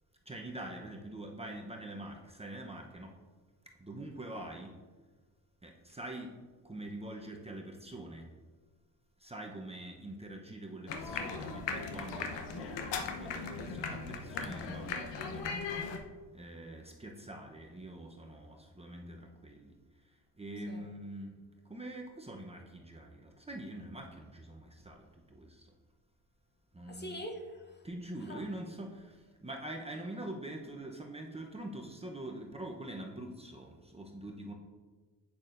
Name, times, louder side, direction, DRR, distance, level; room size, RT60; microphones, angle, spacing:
voice 1, 0.3-3.1 3.8-4.8 5.6-6.4 6.6-8.3 9.2-15.5 16.3-19.8 20.0-21.4 21.6-25.7 26.7-27.2 27.8-34.5, right 1 dB, 15° right, 1 dB, 0.7 m, -45 dB
sound 1, 10.9-16.0, left 5 dB, 80° left, 0.9 m, -38 dB
voice 2, 26.9-27.9 28.2-28.4, equal, 25° left, 4 dB, 0.8 m, -44 dB
8.2 x 6.5 x 2.5 m, 1.3 s
cardioid pair, 90°, 43 cm